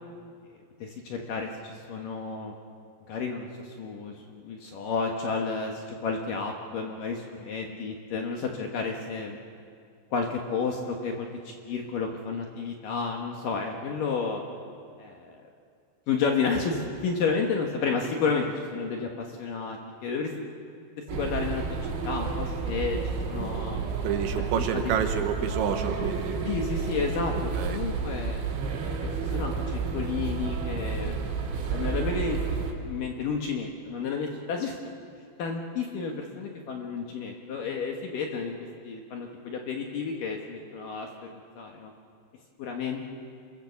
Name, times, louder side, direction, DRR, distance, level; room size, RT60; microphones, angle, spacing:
voice 1, 0.5-2.5 3.1-9.4 10.1-14.4 15.0-15.4 16.1-20.5 21.1-23.8 24.6-24.8 26.4-28.4 29.0-31.3 31.7-34.8 35.4-38.6 38.8-41.1 41.6-41.9 42.6-43.0, left 5 dB, 70° left, 1 dB, 2.1 m, -31 dB
sound 1, 21.1-32.7, right 5 dB, 90° right, 5.3 m, -31 dB
voice 2, 24.0-26.4 27.5-27.8, right 8 dB, 75° right, 6 dB, 3.1 m, -29 dB
27.0 x 22.5 x 7.1 m, 2.3 s
omnidirectional pair, 5.9 m